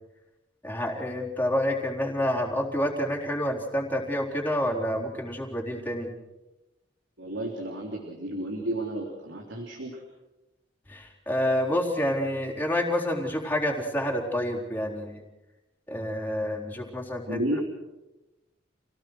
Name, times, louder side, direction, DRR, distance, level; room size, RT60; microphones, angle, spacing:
voice 1, 0.6-6.1 10.9-15.2 15.9-17.6, left 1 dB, 10° left, -2 dB, 3.9 m, -28 dB
voice 2, 7.2-10.0 17.3-17.6, right 1 dB, 90° right, 0 dB, 3.7 m, -32 dB
28.5 x 18.0 x 6.4 m, 1.0 s
head